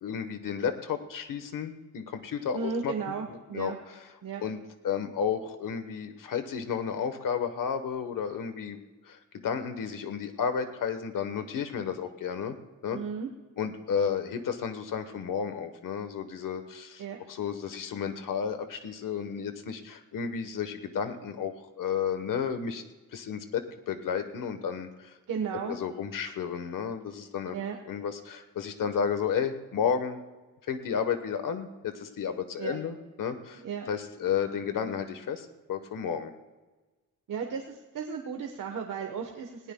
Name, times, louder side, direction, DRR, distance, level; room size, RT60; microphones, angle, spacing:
voice 1, 0.0-3.7 4.4-4.6 4.8-8.8 9.0-12.6 12.8-13.0 13.6-17.0 17.3-22.8 23.1-25.1 25.7-27.6 27.9-30.2 30.7-36.3, left 7 dB, 85° left, 8 dB, 1.1 m, -32 dB
voice 2, 2.5-3.8 4.2-4.4 12.9-13.3 17.0-17.2 25.3-25.8 27.5-27.7 32.6-32.8 33.6-33.9 37.3-39.7, right 6 dB, 80° right, 2 dB, 1.2 m, -34 dB
20.0 x 17.5 x 2.2 m, 1.2 s
wide cardioid pair, 165°, 32 cm